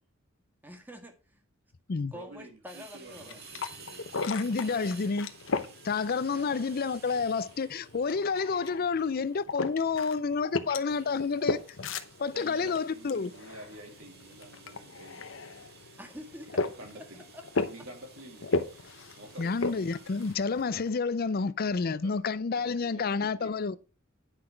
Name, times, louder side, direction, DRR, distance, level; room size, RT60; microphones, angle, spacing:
voice 1, 0.6-1.4 2.1-3.4 6.3-6.5 16.0-17.7, left 1 dB, 10° right, 1.7 m, -47 dB
voice 2, 2.1-4.2 4.6-5.0 12.3-15.3 16.7-17.2 17.6-18.6 19.2-19.8 21.2-23.5, right 2 dB, 80° right, 2.5 m, -49 dB
sound 1, 2.7-20.3, right 5 dB, 50° right, 2.0 m, -54 dB
sound 2, 3.1-20.9, left 3 dB, 65° left, 0.9 m, -37 dB
voice 3, 4.3-5.3 5.8-11.6 12.2-13.3 19.4-23.8, left 4 dB, 50° left, 0.5 m, -29 dB
9.8 x 5.8 x 4.6 m
head